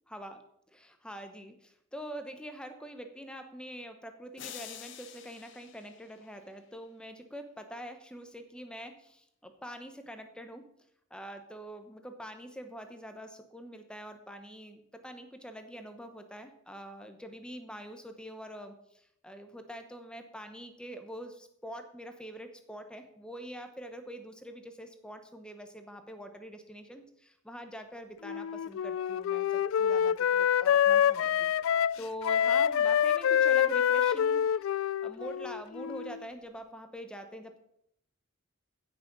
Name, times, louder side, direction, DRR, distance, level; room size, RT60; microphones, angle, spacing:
voice 1, 0.1-0.4 0.7-10.7 11.1-31.5 32.0-34.8 35.0-37.6, equal, 5° left, 7 dB, 0.9 m, -45 dB
sound 1, 4.4-6.7, left 9 dB, 60° left, 1.1 m, -48 dB
Wind instrument woodwind instrument, 28.2-36.2, left 9 dB, 80° left, 0.3 m, -26 dB
15.5 x 6.1 x 5.3 m, 0.75 s
head